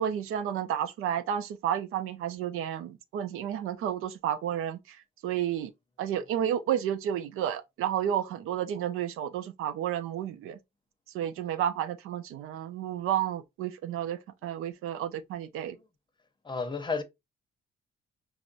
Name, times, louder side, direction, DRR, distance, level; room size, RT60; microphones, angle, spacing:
voice 1, 0.0-5.0 5.2-5.7 6.0-10.6 11.1-15.8, right 10 dB, 85° right, 0.5 m, -31 dB
voice 2, 16.4-17.0, left 4 dB, 20° left, 0.7 m, -31 dB
5.8 x 2.1 x 2.5 m
cardioid pair, 100°, 21 cm